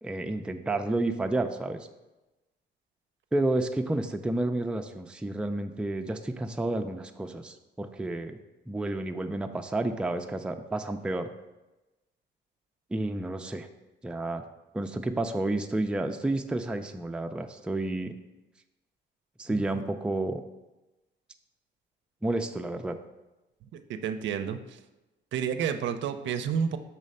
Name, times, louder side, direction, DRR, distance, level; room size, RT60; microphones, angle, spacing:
voice 1, 0.0-1.9 3.3-8.4 8.7-11.3 12.9-13.7 14.0-14.4 14.7-18.1 19.4-20.4 22.2-23.0, right 2 dB, 5° right, 6 dB, 0.3 m, -30 dB
voice 2, 23.9-24.8 25.3-26.8, right 7 dB, 70° right, 8 dB, 0.5 m, -30 dB
5.6 x 3.2 x 5.3 m, 1.0 s
cardioid pair, 90°, 20 cm